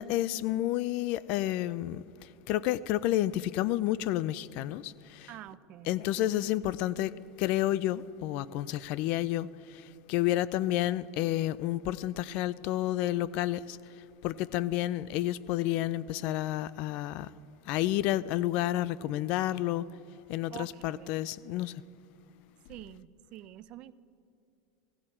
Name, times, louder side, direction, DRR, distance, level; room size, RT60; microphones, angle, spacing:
voice 1, 0.0-2.0 2.5-5.3 5.9-7.1 7.4-9.5 10.1-13.8 14.2-17.3 17.7-19.9 20.3-21.7, left 14 dB, 55° left, 0.4 m, -30 dB
voice 2, 5.3-6.3 20.5-21.1 22.7-23.9, right 13 dB, 50° right, 0.5 m, -47 dB
17.0 x 16.0 x 4.3 m
supercardioid pair, 120°, 2 cm